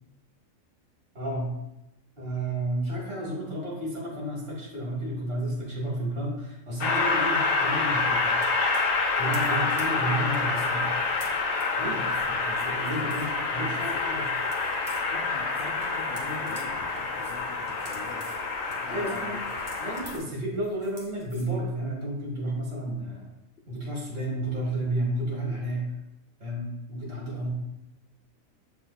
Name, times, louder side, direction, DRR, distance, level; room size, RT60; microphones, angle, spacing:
voice 1, 1.1-1.5 2.2-8.4 9.1-10.8 11.8-14.3 18.9-19.4 19.8-23.3 23.7-25.9 26.4-27.5, right 1 dB, 45° right, -4 dB, 1.5 m, -32 dB
Train, 6.8-20.2, left 3 dB, 75° left, 1.0 m, -27 dB
sound 1, 8.4-13.4 13.7-16.7 17.0-21.5, right 1 dB, 15° right, 0.9 m, -50 dB
voice 2, 15.1-18.3 18.7-19.4 27.3-27.5, left 2 dB, 55° left, -3 dB, 0.7 m, -43 dB
7.9 x 2.7 x 2.3 m, 0.90 s
omnidirectional pair, 1.4 m